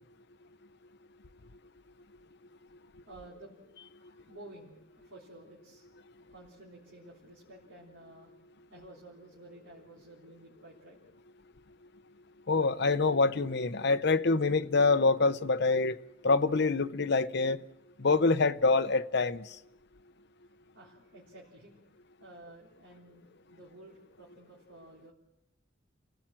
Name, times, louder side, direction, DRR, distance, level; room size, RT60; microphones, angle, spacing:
voice 1, 3.1-3.6 4.0-5.9 6.3-8.3 8.7-11.0 20.7-21.8 22.2-25.1, right 2 dB, 80° right, 3.5 m, -53 dB
voice 2, 12.5-15.9 16.2-17.6 18.0-19.4, left 3 dB, 60° left, 0.8 m, -25 dB
29.5 x 16.5 x 7.6 m
head